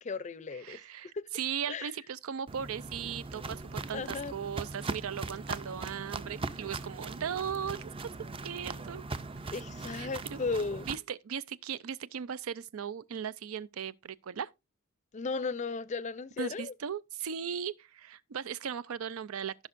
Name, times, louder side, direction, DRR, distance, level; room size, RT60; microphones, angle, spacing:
voice 1, 0.0-0.8 1.1-1.3 1.7-1.9 3.9-4.3 9.5-10.9 15.1-16.7, left 4 dB, 35° left, 0.5 m, -35 dB
voice 2, 0.6-7.9 8.4-9.1 9.4-9.5 9.9-10.4 10.9-14.5 16.4-19.5, right 8 dB, 90° right, 0.5 m, -37 dB
Walk footsteps, 2.5-11.0, right 3 dB, 25° right, 0.5 m, -40 dB
15.0 x 5.9 x 2.5 m
head